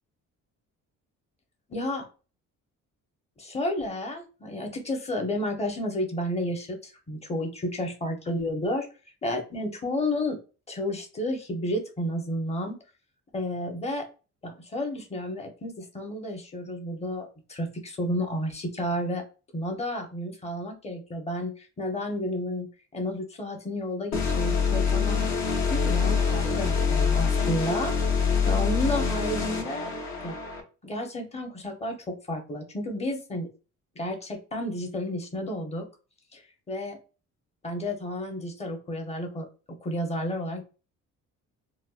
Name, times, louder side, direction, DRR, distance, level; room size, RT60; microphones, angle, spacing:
voice 1, 1.7-2.1 3.4-8.9 9.2-10.4 10.7-12.8 13.3-14.1 14.4-19.2 19.5-25.3 25.7-27.9 28.2-29.9 30.2-30.4 30.8-33.5 34.0-35.9 36.3-37.0 37.6-39.5 39.8-40.6, left 1 dB, 20° left, 3 dB, 0.8 m, -31 dB
sound 1, 24.1-30.6, left 6 dB, 60° left, 1.0 m, -25 dB
4.2 x 2.3 x 2.3 m, 0.34 s
cardioid pair, 125°, 31 cm